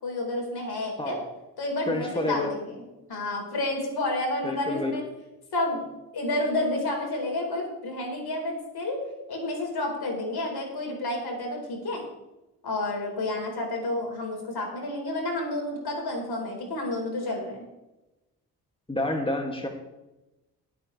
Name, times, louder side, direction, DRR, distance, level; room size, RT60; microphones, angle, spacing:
voice 1, 0.0-1.2 1.6-2.7 3.1-5.0 5.5-5.8 6.1-9.0 9.3-12.0 12.6-17.6, left 2 dB, 65° left, 0 dB, 4.6 m, -30 dB
voice 2, 1.9-2.5 4.4-4.9 18.9-19.7, left 2 dB, 15° left, 2 dB, 2.4 m, -28 dB
19.0 x 8.5 x 3.4 m, 0.99 s
supercardioid pair, 45°, 40 cm